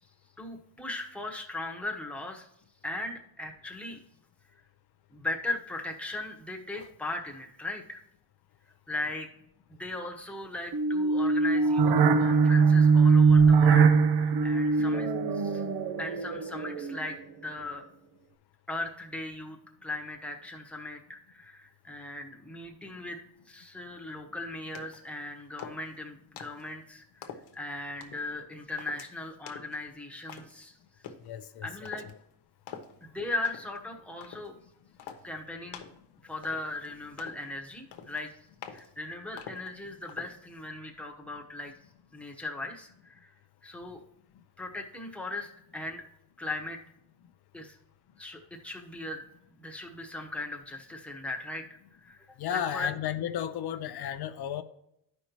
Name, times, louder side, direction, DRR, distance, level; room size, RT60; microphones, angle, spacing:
voice 1, 0.4-2.5 2.8-4.0 5.1-8.0 8.9-9.3 9.7-15.6 16.0-17.9 18.7-23.2 23.5-30.7 31.6-32.1 33.0-34.5 35.2-35.8 36.2-38.3 38.7-41.7 42.1-43.3 43.6-44.0 44.6-46.0 46.4-46.8 47.5-47.8 48.2-49.2 49.6-51.7 52.0-52.3 52.5-52.9, left 2 dB, 5° left, 1 dB, 1.0 m, -38 dB
sound 1, 10.7-17.1, right 5 dB, 70° right, 0.8 m, -22 dB
sound 2, 24.7-25.1 25.6-26.0 26.4-26.7 27.2-27.5 28.0-28.3 28.8-29.1 29.5-29.8 30.3-30.6 31.0-31.3 31.8-32.1 32.7-32.9 33.4-33.8 34.2-34.5 35.0-35.3 35.7-36.0 36.4-36.9 37.2-37.5 37.9-38.2 38.6-38.9 39.4-39.7 40.1-40.4, left 8 dB, 80° left, 1.0 m, -45 dB
voice 2, 31.2-31.7 52.4-54.6, left 10 dB, 65° left, 9 dB, 0.6 m, -34 dB
13.0 x 5.3 x 3.0 m, 0.78 s
cardioid pair, 120°, 41 cm